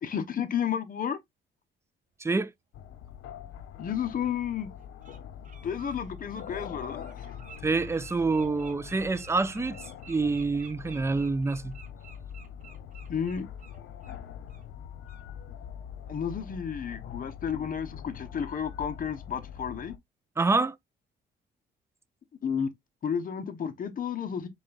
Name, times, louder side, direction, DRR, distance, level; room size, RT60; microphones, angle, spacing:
voice 1, 0.0-1.2 3.8-4.7 5.6-7.2 13.1-13.5 16.1-19.9 22.4-22.7 23.0-24.5, left 8 dB, 45° left, 1.0 m, -32 dB
voice 2, 2.2-2.5 7.6-9.8 10.1-11.8 20.4-20.8, right 3 dB, 15° right, 0.4 m, -27 dB
sound 1, 2.7-20.0, left 8 dB, 80° left, 0.7 m, -44 dB
Bird, 3.4-3.5 4.2-4.3 4.8-5.2 5.4-14.2 14.5-14.7 15.1-15.2, right 6 dB, 40° right, 1.5 m, -52 dB
5.2 x 4.0 x 2.4 m
cardioid pair, 90°, 20 cm